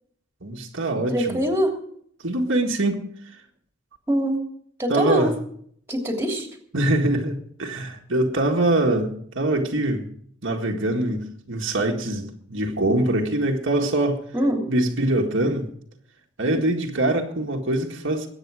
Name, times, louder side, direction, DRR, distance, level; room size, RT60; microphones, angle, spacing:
voice 1, 0.4-1.4 2.2-3.4 4.9-5.3 6.7-10.1 10.4-14.2 14.7-15.7 16.4-18.3, right 1 dB, 60° right, 1.8 m, -23 dB
voice 2, 1.1-1.8 4.1-4.4 4.8-5.4 5.9-6.5 14.3-14.7, right 1 dB, 10° right, 3.0 m, -23 dB
22.0 x 8.9 x 4.9 m
head